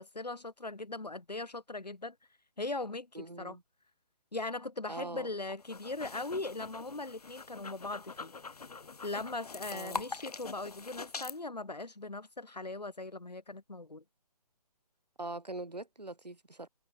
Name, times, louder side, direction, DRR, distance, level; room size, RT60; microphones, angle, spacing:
voice 1, 0.0-2.2 2.6-3.6 4.3-8.3 9.0-14.0, left 2 dB, 90° left, 1.8 m, -39 dB
voice 2, 3.1-3.6 4.9-5.3 9.7-10.0 15.2-16.7, right 2 dB, 85° right, 6.2 m, -42 dB
sound 1, 5.6-11.4, left 4 dB, 70° left, 2.6 m, -44 dB
figure-of-eight pair, 140°, 20 cm